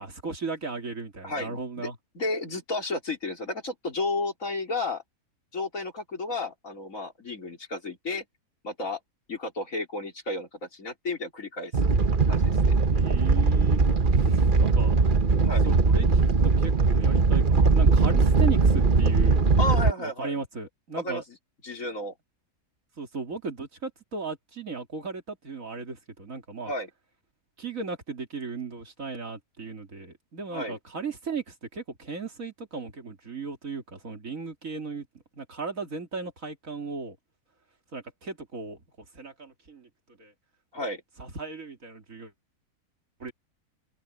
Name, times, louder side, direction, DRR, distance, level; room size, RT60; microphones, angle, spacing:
voice 1, 0.0-2.0 12.9-13.8 14.2-15.2 15.6-19.4 20.0-21.2 23.0-26.7 27.6-35.1 35.4-37.2 37.9-38.8 39.1-39.9 40.2-40.3 41.2-42.3 43.2-43.3, right 4 dB, 55° right, 3.0 m, -36 dB
voice 2, 1.2-1.9 2.1-5.0 5.5-8.2 8.6-9.0 9.3-11.7 12.3-12.8 15.4-15.7 19.6-20.3 20.9-21.4 21.6-22.1 26.6-26.9 30.5-30.8 40.7-41.0, left 2 dB, 55° left, 4.1 m, -32 dB
Animal, 11.7-19.9, right 4 dB, 35° right, 1.2 m, -20 dB
open air
omnidirectional pair, 1.7 m